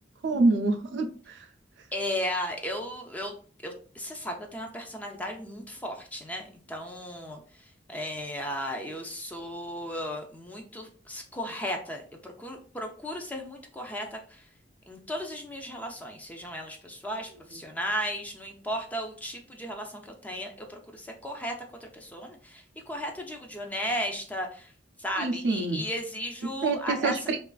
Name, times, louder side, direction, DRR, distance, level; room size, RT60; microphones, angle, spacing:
voice 1, 0.2-1.4 25.2-25.8 26.6-27.4, right 3 dB, 65° right, 6 dB, 0.4 m, -26 dB
voice 2, 1.9-3.3 3.6-14.5 14.9-21.5 21.8-24.7 25.0-27.3, equal, 10° left, 2 dB, 0.4 m, -35 dB
2.9 x 2.4 x 2.3 m, 0.42 s
head